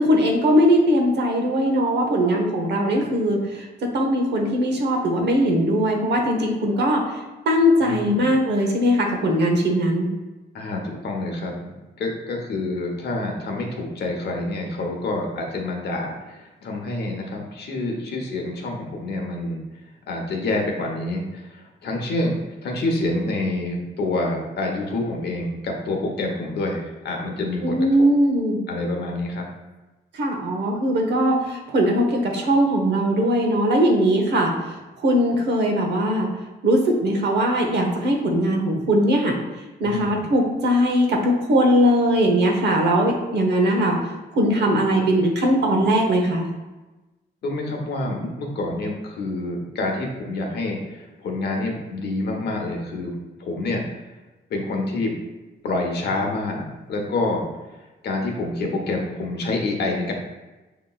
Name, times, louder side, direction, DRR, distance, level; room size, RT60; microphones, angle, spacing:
voice 1, 0.0-7.0 7.5-10.1 27.6-28.6 30.2-34.5 35.0-36.3 36.6-39.4 39.8-44.0 44.4-46.5, equal, 75° right, 2 dB, 0.8 m, -20 dB
voice 2, 7.8-8.3 10.5-11.7 12.0-19.6 20.1-22.3 22.6-28.1 28.7-29.5 39.8-40.2 47.4-53.1 53.4-53.8 54.5-55.1 55.6-57.5 58.0-60.1, left 2 dB, 70° left, 1 dB, 0.9 m, -27 dB
6.6 x 2.9 x 2.3 m, 1.1 s
wide cardioid pair, 160°, 18 cm